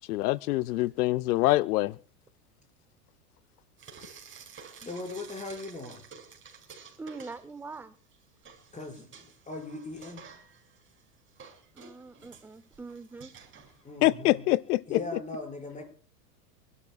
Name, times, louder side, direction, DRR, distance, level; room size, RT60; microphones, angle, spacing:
voice 1, 0.1-2.0 14.0-15.0, left 18 dB, 75° left, 0.5 m, -25 dB
Frying (food), 3.8-7.8 8.1-14.1, right 6 dB, 25° right, 4.6 m, -51 dB
voice 2, 4.8-6.0 8.7-10.2 13.8-14.4 14.9-15.8, left 2 dB, 15° left, 5.3 m, -39 dB
voice 3, 7.0-7.9 11.7-13.3, right 3 dB, 5° right, 0.5 m, -43 dB
26.5 x 12.0 x 2.3 m
hypercardioid pair, 110°, 46 cm